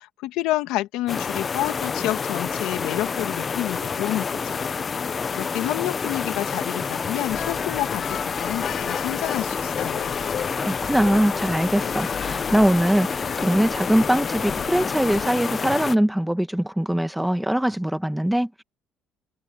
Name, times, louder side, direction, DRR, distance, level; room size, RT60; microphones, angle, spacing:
voice 1, 0.0-4.3 4.5-4.6 5.3-10.2, left 16 dB, 85° left, 1.7 m, -29 dB
sound 1, 1.1-16.0, left 5 dB, 35° left, 0.9 m, -28 dB
sound 2, 7.3-15.3, left 9 dB, 55° left, 1.3 m, -36 dB
voice 2, 10.6-18.6, right 1 dB, 5° right, 1.5 m, -22 dB
cardioid pair, 105°, 0 cm